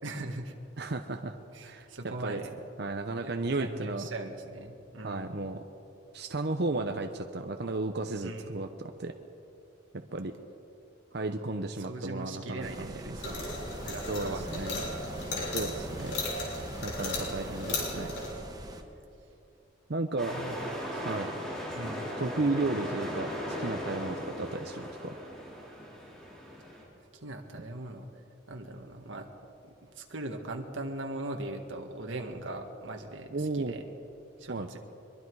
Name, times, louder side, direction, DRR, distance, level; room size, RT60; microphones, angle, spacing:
voice 1, 0.0-0.5 1.5-2.5 3.2-5.4 8.2-8.6 11.8-14.9 20.3-20.6 20.9-21.0 21.7-22.1 27.2-28.1 28.5-29.3 29.6-33.8 34.4-34.8, right 2 dB, 80° right, 2 dB, 1.7 m, -40 dB
voice 2, 0.8-1.4 1.6-2.4 2.8-4.1 5.0-5.6 6.1-9.1 9.9-10.3 11.1-12.9 14.1-14.9 15.5-16.2 16.8-18.1 19.9-20.4 21.0-21.3 22.2-23.3 23.6-25.1 27.5-27.6 33.3-33.8 34.5-34.8, right 2 dB, 60° right, 6 dB, 0.9 m, -34 dB
sound 1, 12.6-18.8, right 1 dB, 20° right, 1.4 m, -42 dB
sound 2, 13.2-18.3, left 2 dB, 65° left, 6.2 m, -36 dB
sound 3, 20.2-26.8, equal, 5° left, 5.1 m, -37 dB
23.5 x 23.0 x 4.8 m, 2.8 s
head